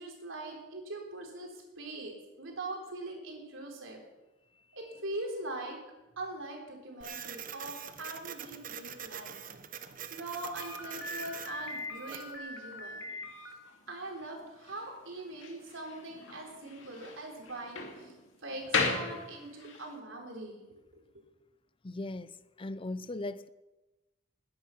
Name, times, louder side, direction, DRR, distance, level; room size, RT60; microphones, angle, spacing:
voice 1, 0.0-4.0 4.7-5.8 6.2-9.4 10.1-13.1 13.9-18.1 18.4-21.0, right 2 dB, 75° right, 3.9 m, -42 dB
Printer, 7.0-12.4, right 8 dB, 40° right, 0.9 m, -44 dB
Slam, 10.5-19.9, left 3 dB, 65° left, 2.6 m, -38 dB
voice 2, 21.8-23.5, left 2 dB, 25° left, 0.5 m, -38 dB
20.0 x 10.0 x 5.9 m
head